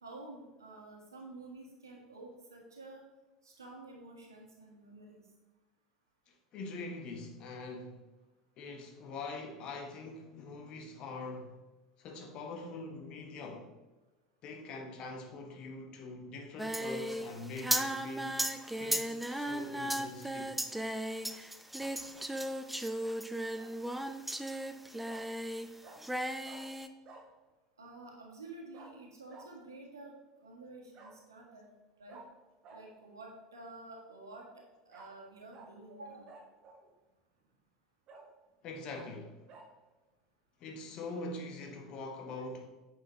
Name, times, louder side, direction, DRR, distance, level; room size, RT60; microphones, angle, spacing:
voice 1, 0.0-3.0 3.4-5.2 27.8-30.1 30.4-31.7 32.0-32.2 32.7-34.5 34.8-36.3, right 2 dB, 80° right, 1.7 m, -50 dB
voice 2, 6.3-8.1 8.6-11.6 12.0-13.7 14.4-18.4 18.8-20.5 38.6-39.4 40.6-42.7, left 3 dB, 45° left, 1.3 m, -43 dB
Singing, 16.6-25.7 26.0-26.9, right 1 dB, 5° right, 0.5 m, -36 dB
Bark, 23.4-23.7 25.1-25.3 25.8-26.0 26.4-26.6 27.0-27.3 28.7-28.9 29.3-29.5 30.9-31.1 32.1-32.2 32.6-32.8 34.9-35.1 35.5-35.7 36.3-36.9 37.4-37.5 38.1-38.3 38.9-39.1 39.5-39.7, right 4 dB, 40° right, 1.5 m, -53 dB
9.2 x 6.4 x 3.2 m
figure-of-eight pair, 75°, 2 cm